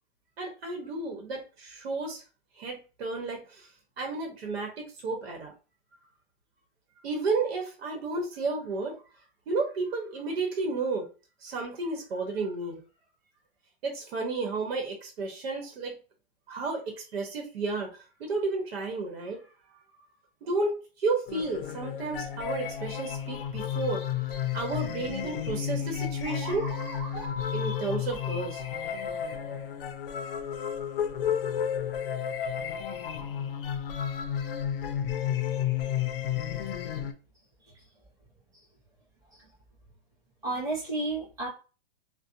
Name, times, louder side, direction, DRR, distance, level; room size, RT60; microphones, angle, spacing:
voice 1, 0.4-2.2 2.6-3.7 4.0-5.5 7.0-9.0 9.5-11.1 11.4-12.8 13.8-15.9 16.5-17.9 18.2-19.4 20.4-24.0 24.5-26.7 27.5-28.6, right 3 dB, 80° right, 3 dB, 1.0 m, -32 dB
sound 1, 21.3-37.1, left 9 dB, 65° left, 0.5 m, -32 dB
sound 2, 26.3-30.0, right 1 dB, 40° right, 1.5 m, -43 dB
voice 2, 40.4-41.5, right 2 dB, 10° right, -8 dB, 1.0 m, -33 dB
2.6 x 2.1 x 2.5 m, 0.33 s
supercardioid pair, 160°, 30 cm